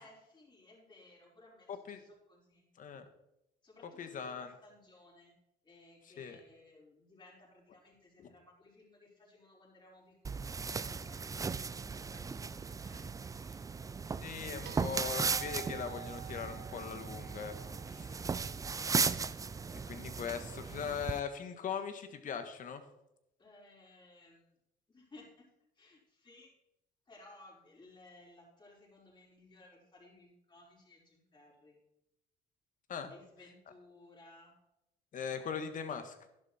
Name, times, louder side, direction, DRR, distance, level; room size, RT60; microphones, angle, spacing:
voice 1, 0.0-2.7 3.6-5.3 5.6-13.9 17.8-18.7 23.4-24.6 24.9-25.5 25.8-26.5 27.1-31.8 33.1-34.6, left 2 dB, 25° left, -4 dB, 5.3 m, -60 dB
voice 2, 2.8-3.1 4.0-4.5 6.2-6.4 8.2-8.3 14.2-17.5 17.9-18.2 19.9-22.8 32.9-33.1 35.1-36.3, left 7 dB, 50° left, 8 dB, 1.7 m, -40 dB
sound 1, 10.2-21.2, right 5 dB, 20° right, 0.4 m, -37 dB
sound 2, 14.6-18.9 21.2-21.3, right 14 dB, 75° right, 0.7 m, -51 dB
11.5 x 11.0 x 4.4 m, 0.87 s
cardioid pair, 110°, 17 cm